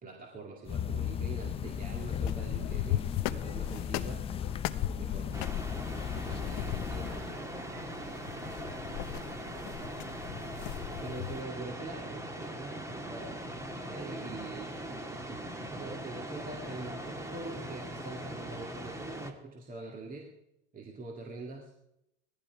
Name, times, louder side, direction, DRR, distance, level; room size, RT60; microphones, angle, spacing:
voice 1, 0.0-4.3 5.0-5.4 6.1-7.5 11.0-20.3 20.7-21.7, right 2 dB, 25° right, 1 dB, 2.2 m, -44 dB
sound 1, 0.7-7.4, left 8 dB, 15° left, 0.5 m, -36 dB
sound 2, 1.4-11.4, left 15 dB, 50° left, 0.9 m, -38 dB
sound 3, 5.3-19.3, right 1 dB, 10° right, 1.9 m, -41 dB
voice 2, 6.9-11.3, right 5 dB, 70° right, 3 dB, 2.5 m, -55 dB
18.5 x 14.5 x 4.7 m, 0.84 s
hypercardioid pair, 100°, 35 cm